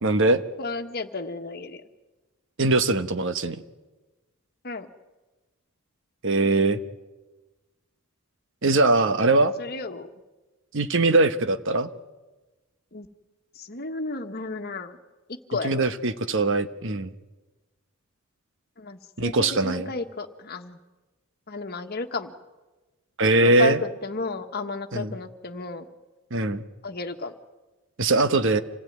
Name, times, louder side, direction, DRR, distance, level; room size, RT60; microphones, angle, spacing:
voice 1, 0.0-0.4 2.6-3.6 6.2-6.8 8.6-9.5 10.7-11.9 15.6-17.1 19.2-19.9 23.2-23.8 24.9-25.1 26.3-26.6 28.0-28.6, right 2 dB, 60° right, 11 dB, 1.2 m, -21 dB
voice 2, 0.6-1.8 4.6-4.9 9.4-10.1 12.9-13.1 13.5-15.0 15.3-15.9 18.8-20.8 21.5-22.3 23.4-25.9 26.8-27.3, left 3 dB, 45° left, 7 dB, 1.5 m, -33 dB
26.5 x 16.5 x 9.5 m, 1.2 s
head